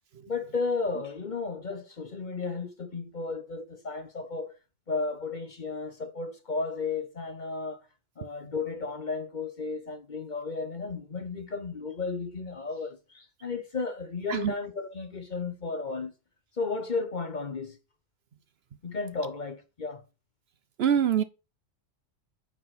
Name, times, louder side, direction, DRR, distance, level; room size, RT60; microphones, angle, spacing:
voice 1, 0.3-4.5 4.9-7.8 8.2-16.1 16.6-17.8 18.8-20.0, left 4 dB, 40° left, 0.9 m, -34 dB
voice 2, 20.8-21.2, right 9 dB, 60° right, 0.9 m, -24 dB
9.4 x 4.7 x 5.8 m
omnidirectional pair, 1.3 m